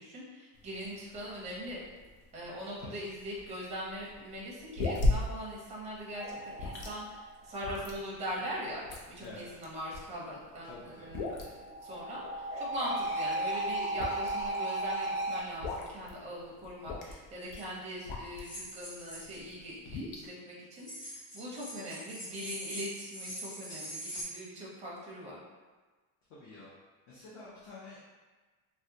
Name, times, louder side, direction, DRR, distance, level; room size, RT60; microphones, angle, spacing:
voice 1, 0.0-1.8 2.3-11.5 11.8-25.4, equal, 15° right, -5 dB, 0.5 m, -41 dB
sound 1, 0.5-18.7 19.1-20.3, left 2 dB, 85° left, 0.7 m, -38 dB
sound 2, 6.1-7.5 11.0-15.4, right 1 dB, 20° left, 1.3 m, -35 dB
voice 2, 10.7-11.1 26.3-26.7 27.1-28.0, left 3 dB, 35° left, -7 dB, 0.4 m, -48 dB
sound 3, 17.5-17.6 18.4-19.4 20.8-24.2, equal, 55° left, 1.5 m, -43 dB
3.5 x 2.2 x 2.7 m, 1.3 s
cardioid pair, 180°, 41 cm